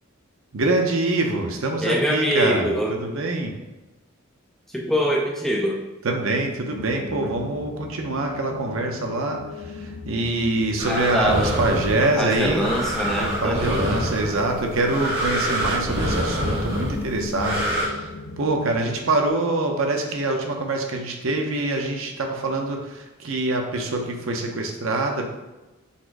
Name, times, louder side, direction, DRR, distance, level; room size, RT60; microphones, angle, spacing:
voice 1, 0.5-3.5 6.0-9.4 9.7-12.7 13.2-18.1 18.4-25.3, right 2 dB, 75° right, 2 dB, 0.7 m, -25 dB
voice 2, 1.8-2.9 4.7-5.8 10.9-11.6 12.2-14.0, equal, ahead, -1 dB, 0.3 m, -24 dB
sound 1, 6.6-19.3, left 4 dB, 65° left, 0.4 m, -38 dB
sound 2, 10.8-17.9, equal, 25° right, 1.3 m, -27 dB
4.1 x 2.5 x 4.7 m, 1.1 s
head